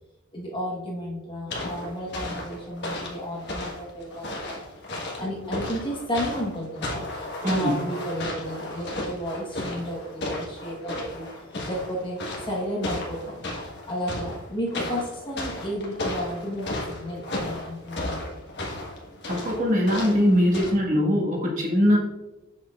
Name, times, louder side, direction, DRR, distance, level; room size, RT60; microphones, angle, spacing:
voice 1, 0.3-4.6 5.2-18.4, equal, 20° left, -4 dB, 1.3 m, -33 dB
sound 1, 1.5-20.7, left 1 dB, 50° left, 1.6 m, -34 dB
voice 2, 19.3-22.0, equal, 35° right, -3 dB, 1.6 m, -21 dB
7.8 x 6.4 x 2.5 m, 1.0 s
head